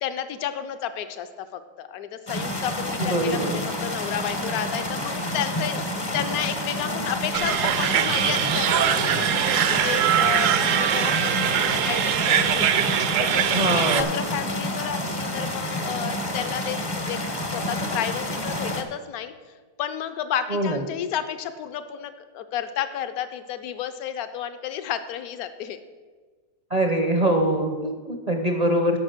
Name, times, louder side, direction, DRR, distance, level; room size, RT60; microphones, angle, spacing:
voice 1, 0.0-12.8 13.2-17.2 17.4-19.3 19.8-25.8, left 9 dB, 70° left, 10 dB, 1.1 m, -32 dB
sound 1, 2.3-18.8, left 1 dB, 25° left, 0.5 m, -29 dB
voice 2, 3.0-3.6 13.5-14.1 20.5-20.8 26.7-29.0, right 1 dB, 40° right, 3 dB, 0.5 m, -23 dB
sound 2, 7.3-14.0, right 10 dB, 65° right, 0.8 m, -22 dB
9.7 x 6.2 x 6.6 m, 1.4 s
omnidirectional pair, 1.7 m